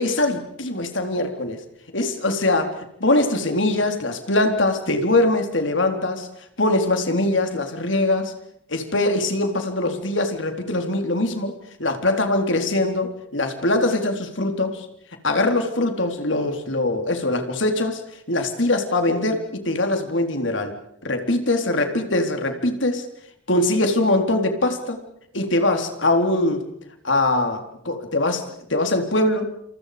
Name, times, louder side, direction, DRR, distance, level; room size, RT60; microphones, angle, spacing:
voice 1, 0.0-1.6 1.9-2.7 3.0-6.3 6.6-8.3 8.7-11.5 11.8-14.9 15.2-18.0 18.3-20.7 21.0-23.1 23.5-25.0 25.3-26.6 27.0-29.5, left 2 dB, 80° left, 5 dB, 4.0 m, -22 dB
29.5 x 27.5 x 5.2 m, 0.71 s
head